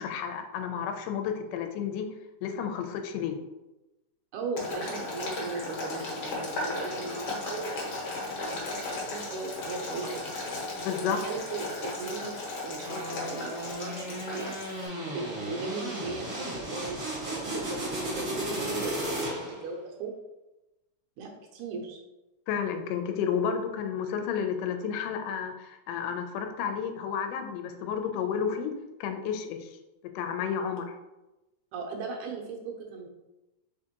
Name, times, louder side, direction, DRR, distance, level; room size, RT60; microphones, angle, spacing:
voice 1, 0.0-2.1 2.4-3.4 10.8-11.2 22.5-29.7 30.2-30.9, left 7 dB, 80° left, 5 dB, 2.1 m, -31 dB
voice 2, 4.3-8.1 8.4-10.2 10.9-12.3 12.6-20.1 21.2-22.0 31.7-33.1, right 3 dB, 75° right, 2 dB, 1.9 m, -38 dB
Boiling, 4.6-14.9, left 2 dB, 60° left, 1.6 m, -36 dB
sound 1, 12.8-19.7, right 1 dB, 55° right, 0.9 m, -34 dB
4.9 x 3.5 x 2.9 m, 1.0 s
omnidirectional pair, 3.8 m